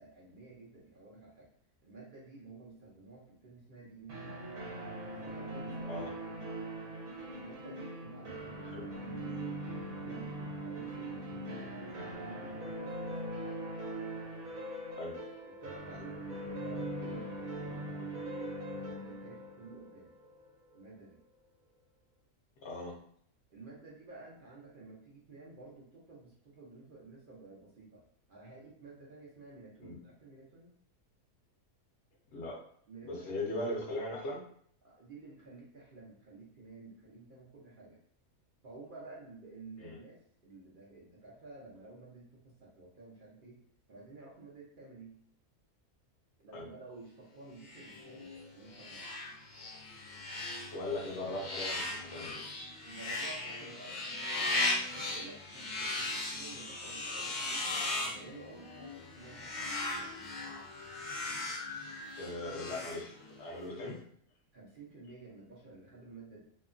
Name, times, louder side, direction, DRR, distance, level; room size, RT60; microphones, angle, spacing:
voice 1, 0.0-1.5 1.8-4.4 5.1-6.7 7.3-9.4 9.9-11.8 12.2-13.3 15.5-18.4 18.7-20.2 20.7-21.2 23.5-28.0 28.3-30.7 32.9-33.4 34.8-38.0 38.6-43.6 43.9-45.2 46.4-49.1 52.8-54.3 54.9-59.7 64.5-66.4, right 3 dB, 50° right, -4 dB, 0.6 m, -52 dB
sound 1, 4.1-20.8, right 1 dB, 70° right, 1.1 m, -41 dB
voice 2, 22.6-22.9 29.8-30.0 32.3-32.6 33.0-34.4 39.8-40.0 46.5-46.7 50.7-52.4 62.2-64.0, left 1 dB, 60° left, -2 dB, 0.9 m, -39 dB
sound 2, 47.6-63.6, left 2 dB, 90° left, 0.4 m, -38 dB
2.8 x 2.3 x 2.4 m, 0.63 s
omnidirectional pair, 1.5 m